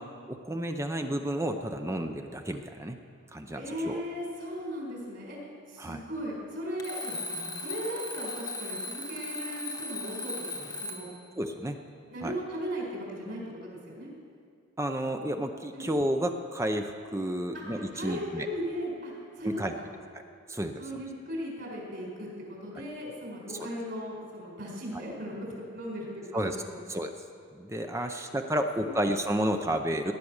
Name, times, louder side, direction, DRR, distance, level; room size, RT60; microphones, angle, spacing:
voice 1, 0.0-3.0 3.3-4.0 5.8-6.0 11.4-11.8 12.2-12.3 14.8-18.5 19.4-19.7 20.5-21.0 24.9-25.0 26.3-26.6 26.9-27.1 27.5-30.1, right 1 dB, 15° right, 5 dB, 0.6 m, -31 dB
voice 2, 3.6-11.1 12.1-14.1 15.7-15.9 17.5-19.5 19.8-19.9 20.8-26.8 27.9-28.2 28.8-28.9, equal, 55° right, -2 dB, 4.9 m, -37 dB
Alarm, 6.8-11.2, left 2 dB, 15° left, 1.0 m, -37 dB
18.0 x 10.0 x 6.5 m, 2.3 s
head